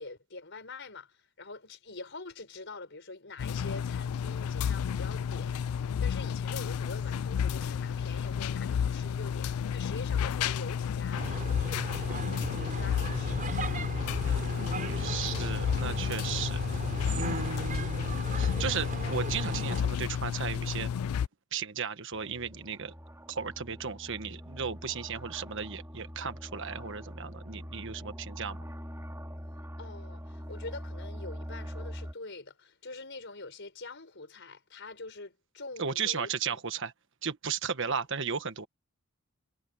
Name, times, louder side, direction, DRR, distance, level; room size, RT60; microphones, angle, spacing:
voice 1, 0.0-13.5 29.8-36.6 37.9-38.0, left 3 dB, 55° left, 5.1 m, -45 dB
sound 1, 3.4-21.3, left 7 dB, 90° left, 0.4 m, -31 dB
sound 2, 11.2-19.8, right 2 dB, 40° right, 5.1 m, -37 dB
voice 2, 14.2-16.6 17.1-20.9 21.5-22.9 23.3-28.6 35.8-36.9 37.2-38.7, right 6 dB, 60° right, 1.4 m, -35 dB
sound 3, 22.1-32.1, equal, 15° right, 3.7 m, -43 dB
head